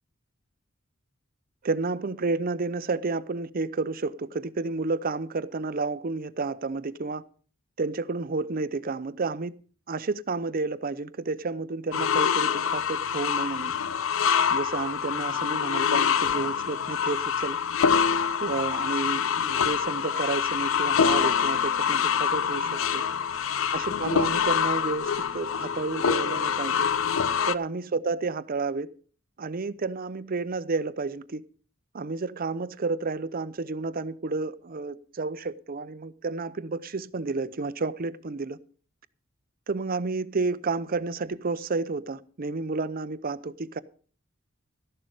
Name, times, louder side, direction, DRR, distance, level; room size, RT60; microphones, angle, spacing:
voice 1, 1.6-7.2 7.8-9.5 9.9-13.7 14.5-17.6 18.4-23.0 23.7-26.9 27.5-28.9 29.4-31.4 31.9-38.6 39.7-43.8, right 3 dB, 45° right, 0.6 m, -31 dB
sound 1, 11.9-27.6, left 7 dB, 75° left, 0.6 m, -25 dB
13.5 x 11.5 x 5.0 m
head